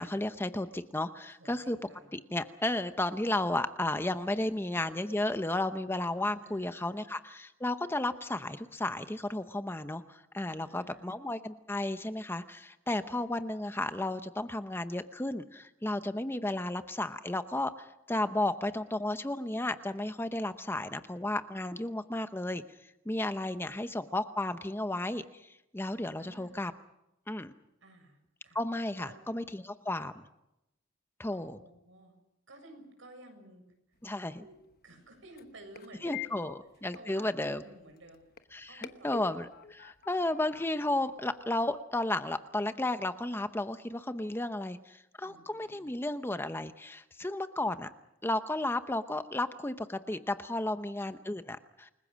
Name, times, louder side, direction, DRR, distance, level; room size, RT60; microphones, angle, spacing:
voice 1, 0.0-1.8 2.1-22.6 23.1-25.2 25.7-26.7 27.3-27.5 28.5-30.2 31.2-31.6 34.0-34.4 36.0-36.5 36.8-37.6 38.5-47.9 48.2-51.9, left 1 dB, 10° left, 10 dB, 0.8 m, -33 dB
voice 2, 1.4-2.1 4.3-4.8 6.4-7.0 10.5-11.1 16.5-16.8 23.4-23.9 26.2-26.6 27.8-28.2 28.4-28.6 29.0-29.3 31.3-32.1 32.5-33.6 34.4-34.5 34.8-36.5 36.9-38.2 38.7-39.2 45.2-45.9 50.7-51.4, right 1 dB, 70° right, 5 dB, 7.0 m, -54 dB
sound 1, 33.9-41.8, left 9 dB, 50° left, 1.1 m, -49 dB
29.0 x 21.0 x 6.3 m, 0.87 s
head